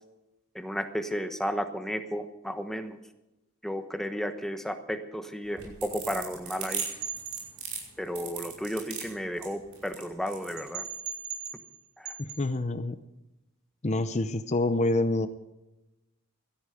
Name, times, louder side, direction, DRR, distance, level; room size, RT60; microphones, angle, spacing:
voice 1, 0.5-3.0 3.6-6.8 8.0-10.9 12.0-12.1, equal, ahead, 8 dB, 1.1 m, -33 dB
sound 1, 5.4-10.6, right 6 dB, 90° right, 5.3 m, -37 dB
sound 2, 6.7-7.5 10.6-11.8 12.0-12.4, right 6 dB, 70° right, 3.8 m, -37 dB
voice 2, 12.2-13.0 13.8-15.3, left 2 dB, 30° left, 11 dB, 0.7 m, -27 dB
16.5 x 13.0 x 5.1 m, 0.95 s
head